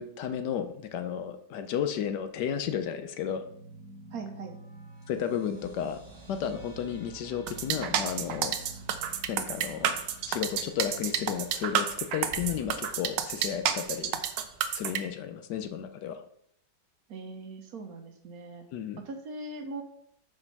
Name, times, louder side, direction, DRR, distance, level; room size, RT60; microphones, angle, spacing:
voice 1, 0.0-3.5 5.1-6.0 6.3-8.6 9.3-9.9 10.3-14.2 14.7-16.2 18.7-19.0, left 8 dB, 75° left, 9 dB, 1.2 m, -33 dB
sound 1, 3.2-14.0, right 2 dB, 5° left, 1.5 m, -51 dB
voice 2, 4.1-4.6 17.1-18.6 19.0-19.8, right 3 dB, 60° right, 5 dB, 1.2 m, -40 dB
sound 2, 5.5-14.8, right 2 dB, 40° right, 0.8 m, -53 dB
sound 3, 7.5-15.0, right 9 dB, 80° right, 1.3 m, -30 dB
5.3 x 5.2 x 5.3 m, 0.70 s
omnidirectional pair, 1.9 m